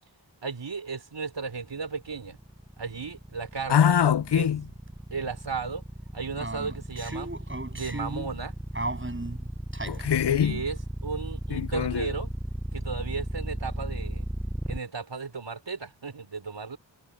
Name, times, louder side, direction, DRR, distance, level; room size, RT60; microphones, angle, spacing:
voice 1, 0.4-2.4 2.8-4.0 4.3-4.5 5.1-5.8 6.1-7.3 7.7-8.5 10.4-10.8 11.0-12.3 12.7-14.2 14.6-16.8, right 5 dB, 70° right, 4.8 m, -35 dB
sound 1, 1.5-14.8, right 1 dB, 5° right, 0.9 m, -35 dB
voice 2, 3.7-4.6 9.8-10.6 11.5-12.1, left 9 dB, 60° left, 0.7 m, -23 dB
sound 2, 4.5-4.6 4.9-5.0 6.4-8.4 8.7-10.1, right 2 dB, 25° right, 5.6 m, -35 dB
wide cardioid pair, 60°, 45 cm